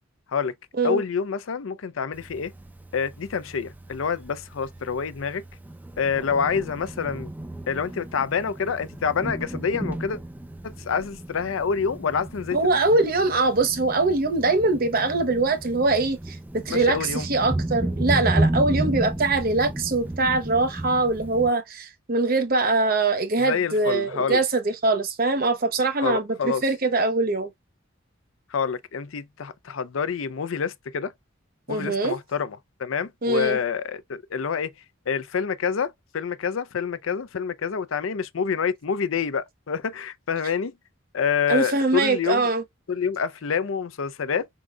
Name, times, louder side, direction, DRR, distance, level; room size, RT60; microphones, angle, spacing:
voice 1, 0.8-2.5 2.9-5.4 6.0-7.3 7.7-10.2 10.6-12.6 16.7-17.3 23.4-24.4 26.0-26.6 28.5-31.1 31.7-34.7 35.1-40.7 41.1-42.5 42.9-44.5, left 6 dB, 80° left, 0.5 m, -27 dB
Thunder, 2.1-21.5, right 1 dB, 10° right, 0.4 m, -33 dB
voice 2, 12.5-27.5 31.7-32.2 33.2-33.6 41.5-42.6, right 3 dB, 45° right, 0.9 m, -23 dB
4.8 x 3.8 x 2.2 m
head